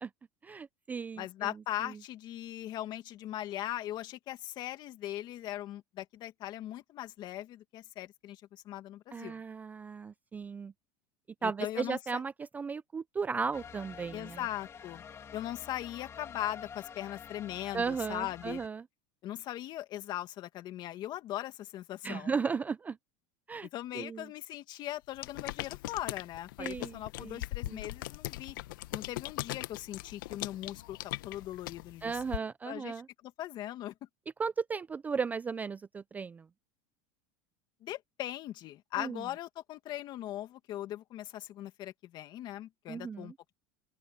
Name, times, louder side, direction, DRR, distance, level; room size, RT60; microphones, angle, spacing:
voice 1, 0.4-1.5 1.8-2.0 9.1-10.7 11.4-14.4 17.7-18.8 22.0-23.0 23.5-23.7 23.9-24.3 26.6-27.9 32.0-33.1 34.4-36.5 39.0-39.2 42.9-43.3, right 5 dB, 15° right, 0.4 m, -36 dB
voice 2, 1.2-9.4 11.4-12.2 14.1-15.0 15.3-18.6 19.2-22.3 23.7-28.6 28.9-33.9 37.8-43.5, left 13 dB, 45° left, 2.1 m, -40 dB
sound 1, 13.5-18.7, left 7 dB, 25° left, 2.6 m, -48 dB
sound 2, 25.2-32.4, left 17 dB, 85° left, 1.0 m, -40 dB
open air
supercardioid pair, 140°, 11 cm